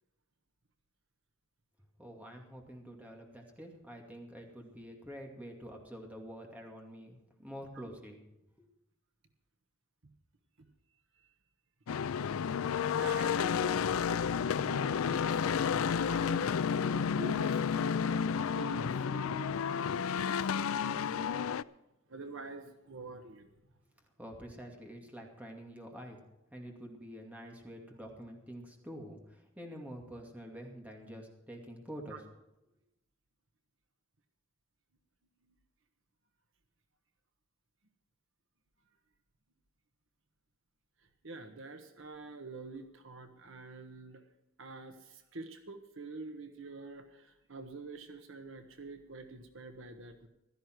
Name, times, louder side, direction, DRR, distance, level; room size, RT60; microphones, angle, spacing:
voice 1, 2.0-8.2 24.2-26.2 26.5-32.2, equal, 5° right, 1 dB, 2.4 m, -47 dB
sound 1, 11.9-21.6, left 7 dB, 85° left, 0.4 m, -31 dB
voice 2, 13.0-21.5 22.1-23.5 32.1-32.2 35.5-35.6 41.2-44.2 44.6-50.3, right 3 dB, 65° right, 6 dB, 1.4 m, -47 dB
16.0 x 13.0 x 4.7 m, 0.93 s
head